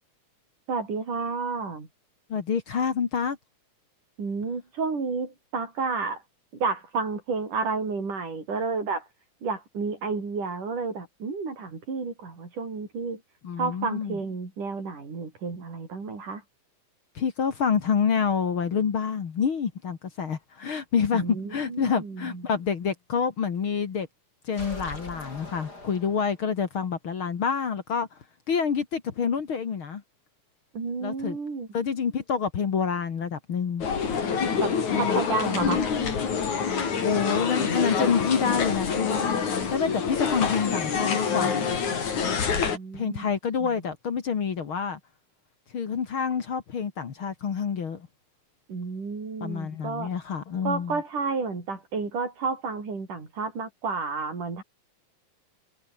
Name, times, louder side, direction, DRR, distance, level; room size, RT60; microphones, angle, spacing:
voice 1, 0.7-1.9 4.2-6.2 6.5-9.1 9.4-13.2 13.6-16.4 21.1-22.4 30.7-31.7 34.6-35.8 42.4-43.3 43.6-43.7 48.7-50.1 50.6-54.6, right 4 dB, 85° right, 7.5 m, -31 dB
voice 2, 2.3-3.4 13.4-14.2 17.2-24.1 24.4-28.2 28.5-30.0 31.0-31.4 31.7-33.9 34.9-35.8 37.0-39.5 39.7-41.6 42.9-45.0 45.7-48.1 49.4-51.0, left 6 dB, 45° left, 2.4 m, -27 dB
sound 1, 24.5-26.6, left 2 dB, 30° left, 7.5 m, -41 dB
sound 2, 33.8-42.8, left 6 dB, 70° left, 4.9 m, -26 dB
omnidirectional pair, 3.6 m